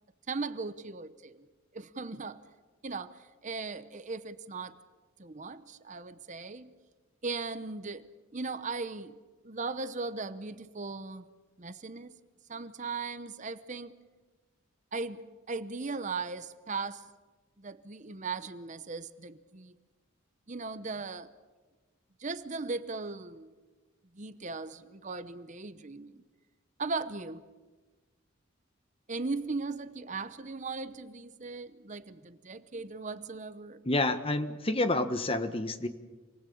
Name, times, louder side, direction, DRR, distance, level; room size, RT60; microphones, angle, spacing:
voice 1, 0.3-1.5 1.7-2.4 2.8-4.8 5.2-6.7 7.2-9.2 9.4-11.3 11.6-12.1 12.5-13.9 14.9-15.2 15.5-17.0 17.6-19.7 20.5-21.3 22.2-23.5 24.1-26.2 26.8-27.4 29.1-33.8, right 4 dB, 35° right, 0.8 m, -38 dB
voice 2, 33.8-35.9, left 2 dB, 25° left, 1.3 m, -29 dB
27.0 x 19.5 x 8.6 m
head